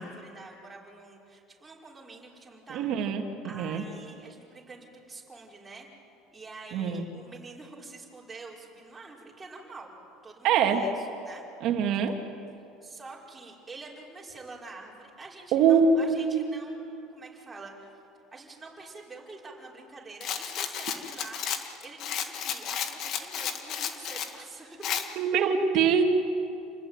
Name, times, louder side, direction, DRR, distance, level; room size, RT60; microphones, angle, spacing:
voice 1, 0.0-3.0 3.4-5.9 6.3-9.9 10.2-11.4 11.9-12.2 12.8-18.0 18.3-24.9, right 3 dB, 15° right, -3 dB, 5.3 m, -47 dB
voice 2, 2.7-3.8 6.7-7.1 10.4-10.9 11.6-12.2 15.5-16.5 25.2-26.0, right 6 dB, 55° right, 4 dB, 2.8 m, -24 dB
Rattle, 20.2-24.3 24.8-25.1, left 8 dB, 50° left, 2.0 m, -33 dB
29.0 x 20.0 x 9.1 m, 2.7 s
cardioid pair, 140°, 0 cm